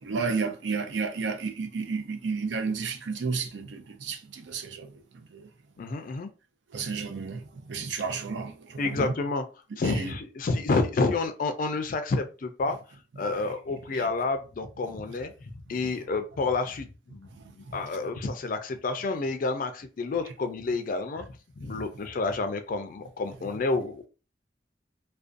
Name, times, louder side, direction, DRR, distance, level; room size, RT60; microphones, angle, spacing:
voice 1, 0.0-5.5 6.7-9.1 9.8-10.2 13.2-13.5 13.9-14.1 14.8-14.9 15.7-15.8 17.4-17.9 21.7-21.8, right 4 dB, 80° right, 0.5 m, -33 dB
voice 2, 5.8-6.3 8.8-9.4 9.8-12.8 13.2-21.2 21.6-24.1, left 3 dB, 50° left, 0.4 m, -29 dB
2.4 x 2.2 x 2.5 m
head